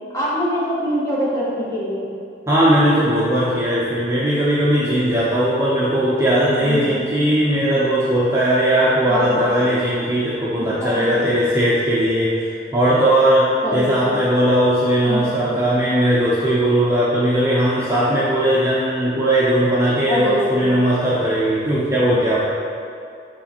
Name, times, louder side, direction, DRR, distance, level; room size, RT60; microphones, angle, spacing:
voice 1, 0.1-2.1 6.6-6.9 9.1-9.6 10.6-10.7 10.9-11.2 13.6-14.1 15.1-15.3 20.1-20.6, equal, 20° left, -8 dB, 1.6 m, -24 dB
voice 2, 2.5-22.5, right 1 dB, 15° right, -8 dB, 0.8 m, -18 dB
8.4 x 4.0 x 4.4 m, 2.4 s
head